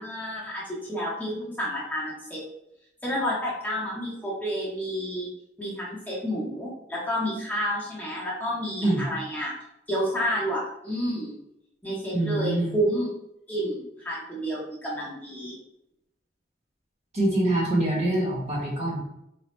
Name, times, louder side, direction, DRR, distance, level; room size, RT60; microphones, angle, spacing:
voice 1, 0.0-2.4 3.0-5.3 5.6-9.5 9.9-11.3 11.8-13.1 13.5-15.5, equal, 10° left, -7 dB, 0.7 m, -30 dB
voice 2, 12.1-12.8 17.1-19.0, right 1 dB, 40° right, -3 dB, 1.0 m, -25 dB
3.3 x 2.0 x 4.2 m, 0.82 s
head